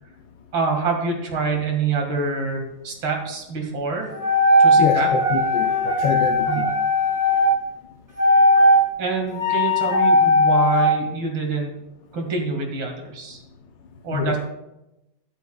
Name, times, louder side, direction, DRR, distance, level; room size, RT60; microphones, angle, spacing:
voice 1, 0.5-4.1 4.6-5.1 6.5-6.7 9.0-11.7 12.1-13.4 14.0-14.4, right 4 dB, 80° right, 1 dB, 2.7 m, -26 dB
sound 1, 4.1-7.5 8.2-8.8 9.3-10.9, left 1 dB, 10° right, 3.8 m, -18 dB
voice 2, 4.8-6.7 14.1-14.4, left 6 dB, 75° left, 3 dB, 1.4 m, -26 dB
13.0 x 11.0 x 2.3 m, 0.91 s
omnidirectional pair, 2.1 m